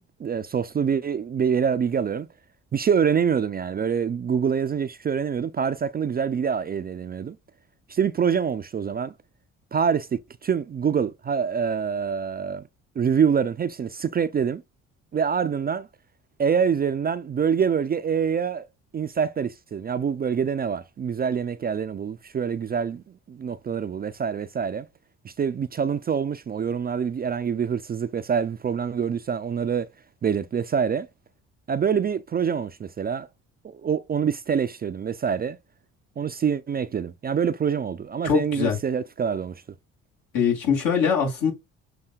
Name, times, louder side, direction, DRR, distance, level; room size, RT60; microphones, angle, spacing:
voice 1, 0.2-2.3 2.7-7.4 7.9-9.1 9.7-12.6 13.0-14.6 15.1-15.9 16.4-18.7 18.9-24.9 25.2-29.9 30.2-31.1 31.7-33.3 33.6-35.6 36.2-39.6, right 7 dB, 30° right, 0.4 m, -25 dB
voice 2, 38.2-38.8 40.3-41.5, left 7 dB, 70° left, 2.4 m, -22 dB
6.7 x 2.7 x 2.3 m
hypercardioid pair, 55°, 34 cm